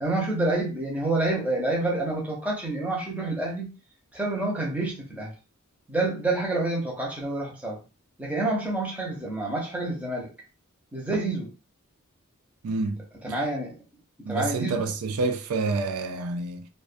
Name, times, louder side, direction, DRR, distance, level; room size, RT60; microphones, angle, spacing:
voice 1, 0.0-3.7 4.1-5.3 5.9-7.8 8.2-10.3 10.9-11.5 13.2-13.7 14.3-14.9, right 2 dB, 5° right, 0.7 m, -28 dB
voice 2, 12.6-13.0 14.2-16.7, right 3 dB, 80° right, 0.4 m, -28 dB
2.2 x 2.2 x 2.5 m
head